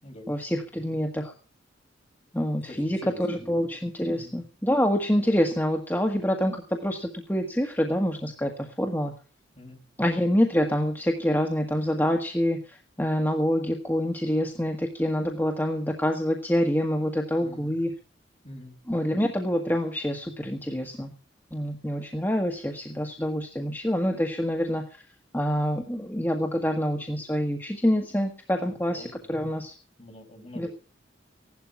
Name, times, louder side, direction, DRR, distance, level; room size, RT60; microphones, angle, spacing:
voice 1, 0.3-1.3 2.3-3.0 3.3-9.1 10.0-17.9 18.9-21.1 21.5-25.0 25.3-29.7 30.6-30.7, equal, 10° left, 2 dB, 1.6 m, -26 dB
voice 2, 2.6-3.6 4.1-4.3 9.5-9.8 17.4-17.8 18.4-18.8 28.6-29.4 30.0-30.7, left 1 dB, 35° left, 3 dB, 5.9 m, -46 dB
16.5 x 12.0 x 5.9 m, 0.39 s
head